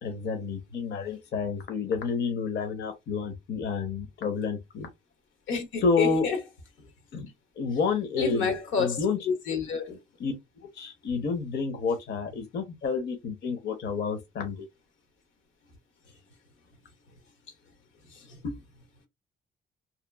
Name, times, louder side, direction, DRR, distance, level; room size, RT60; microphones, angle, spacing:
voice 1, 0.0-4.9 5.8-6.3 7.1-7.3 7.6-8.5 8.8-9.2 10.2-10.3 10.7-14.7, left 5 dB, 60° left, 0.8 m, -29 dB
voice 2, 5.5-6.4 8.2-10.0 18.1-18.6, left 5 dB, 80° left, 1.0 m, -30 dB
2.9 x 2.2 x 2.2 m
cardioid pair, 90°, 20 cm